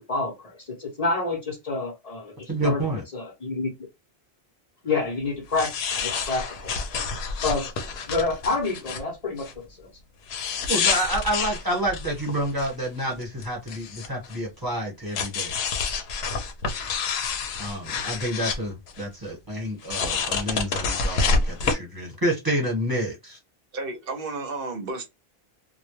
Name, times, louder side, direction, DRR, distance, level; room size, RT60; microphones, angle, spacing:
voice 1, 0.0-2.9 3.1-3.7 4.8-6.7 7.4-7.7 8.1-9.9, left 3 dB, 40° left, 0.7 m, -28 dB
voice 2, 2.5-3.0 10.7-15.5 17.6-23.4, right 1 dB, 20° right, 1.1 m, -28 dB
sound 1, 5.5-9.0 9.4-9.5 10.3-12.9 13.1-14.4 15.1-18.6 18.9-19.0 19.8-21.7, left 4 dB, 80° left, 0.8 m, -28 dB
voice 3, 23.7-25.1, right 3 dB, 65° right, 0.8 m, -32 dB
2.2 x 2.1 x 3.0 m
omnidirectional pair, 1.0 m